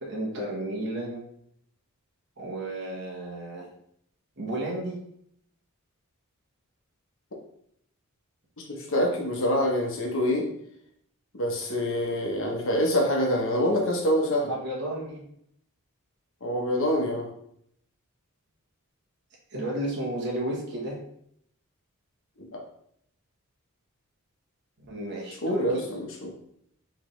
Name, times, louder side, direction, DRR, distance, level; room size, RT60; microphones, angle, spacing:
voice 1, 0.0-1.2 2.4-3.7 4.4-5.0 14.5-15.2 19.5-21.0 24.9-25.8, right 1 dB, 50° right, -3 dB, 1.2 m, -32 dB
voice 2, 8.7-10.5 11.3-14.5 16.4-17.3 22.4-22.6 25.4-26.3, equal, 60° left, 0 dB, 1.0 m, -26 dB
5.0 x 3.3 x 3.2 m, 0.70 s
head